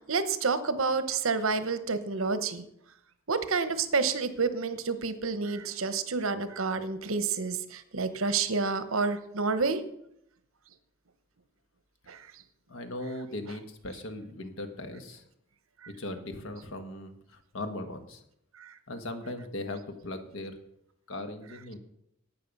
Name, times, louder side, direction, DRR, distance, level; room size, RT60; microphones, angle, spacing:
voice 1, 0.1-2.6 3.3-9.8 12.1-12.3 18.6-18.7, right 4 dB, 80° right, 12 dB, 1.0 m, -29 dB
voice 2, 12.7-15.2 16.0-18.2 18.9-20.6 21.1-21.8, left 1 dB, 70° left, 7 dB, 1.5 m, -38 dB
12.0 x 8.7 x 5.4 m, 0.77 s
head